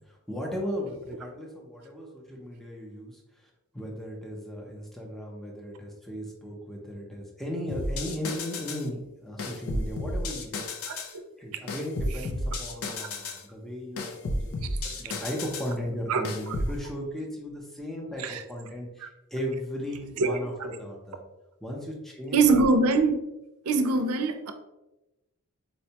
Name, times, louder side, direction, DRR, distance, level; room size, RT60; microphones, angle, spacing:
voice 1, 0.0-10.6 11.4-21.2 21.6-22.4, equal, ahead, 0.5 m, -36 dB
sound 1, 7.7-8.9 9.4-11.1 11.7-13.4 14.0-15.7 16.2-16.8, left 1 dB, 65° left, 0.5 m, -32 dB
voice 2, 22.3-23.2 23.7-24.5, right 3 dB, 75° right, 0.4 m, -23 dB
4.2 x 2.1 x 2.7 m
head